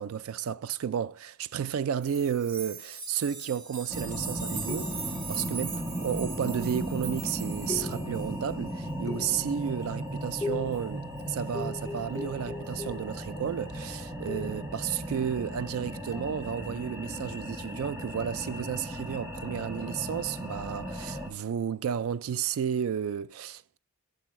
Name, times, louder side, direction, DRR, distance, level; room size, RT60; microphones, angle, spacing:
voice 1, 0.0-4.9 5.3-23.8, right 8 dB, 70° right, 0.3 m, -32 dB
sound 1, 2.0-8.5 10.7-10.8, right 5 dB, 55° right, 1.3 m, -40 dB
sound 2, 3.9-21.3, equal, 15° right, 1.6 m, -36 dB
sound 3, 4.7-5.2 6.5-6.8 7.7-8.3 9.1-9.6 10.4-10.9 11.5-13.2 14.3-14.7 16.1-16.4, left 4 dB, 15° left, 0.3 m, -39 dB
8.3 x 6.7 x 3.1 m
head